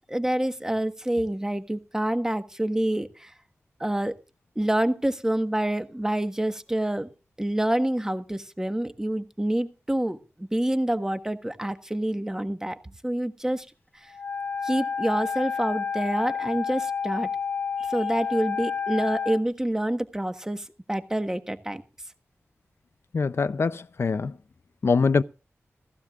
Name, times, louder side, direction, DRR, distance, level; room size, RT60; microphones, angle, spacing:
voice 1, 0.1-3.3 3.8-4.1 4.5-7.1 7.4-12.8 13.0-13.7 14.0-14.1 14.6-17.3 17.8-21.8, right 1 dB, 10° right, 1.3 m, -27 dB
Wind instrument woodwind instrument, 14.1-19.4, left 6 dB, 35° left, 0.9 m, -30 dB
voice 2, 23.1-24.4 24.8-25.2, left 4 dB, 60° left, 0.5 m, -23 dB
16.0 x 15.5 x 2.4 m
wide cardioid pair, 80°, 5 cm